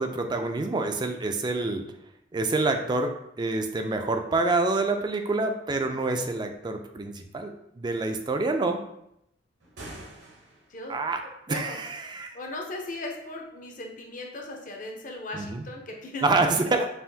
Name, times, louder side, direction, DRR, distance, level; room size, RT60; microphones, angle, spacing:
voice 1, 0.0-1.8 2.3-8.8 10.9-11.2 11.5-12.4 15.3-15.6 16.2-16.9, right 3 dB, 25° right, 6 dB, 0.3 m, -27 dB
sound 1, 9.6-10.9, right 1 dB, 70° right, 0.8 m, -45 dB
voice 2, 10.7-11.8 12.3-16.3, left 2 dB, 45° left, 1 dB, 0.7 m, -38 dB
5.5 x 2.5 x 2.7 m, 0.79 s
head